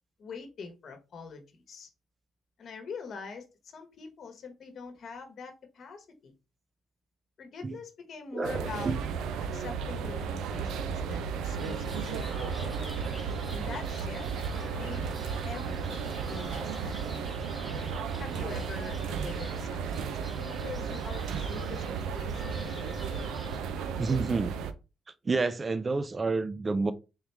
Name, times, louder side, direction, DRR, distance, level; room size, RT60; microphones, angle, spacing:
voice 1, 0.2-1.9 2.6-3.5 3.7-6.3 7.4-8.9 9.5-12.7 13.5-14.3 14.7-15.1 15.4-17.1 18.2-22.7, left 5 dB, 60° left, 1.1 m, -44 dB
voice 2, 8.3-9.0 24.0-24.5 25.3-26.9, right 3 dB, 30° right, 0.4 m, -29 dB
sound 1, 8.4-24.7, right 6 dB, 85° right, 0.4 m, -34 dB
sound 2, 11.5-23.6, left 2 dB, 5° left, 0.8 m, -47 dB
3.6 x 3.0 x 3.3 m
cardioid pair, 90°, 0 cm